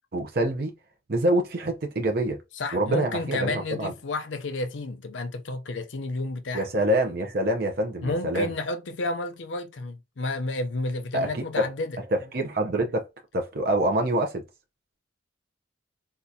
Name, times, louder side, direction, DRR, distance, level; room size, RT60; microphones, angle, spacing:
voice 1, 0.1-0.7 1.1-2.4 2.7-3.9 6.5-8.5 11.1-11.7 12.0-13.1 13.3-14.4, right 1 dB, 55° right, 0.6 m, -26 dB
voice 2, 2.6-6.7 8.0-12.0, left 2 dB, 85° left, 0.6 m, -31 dB
3.7 x 2.4 x 2.7 m
head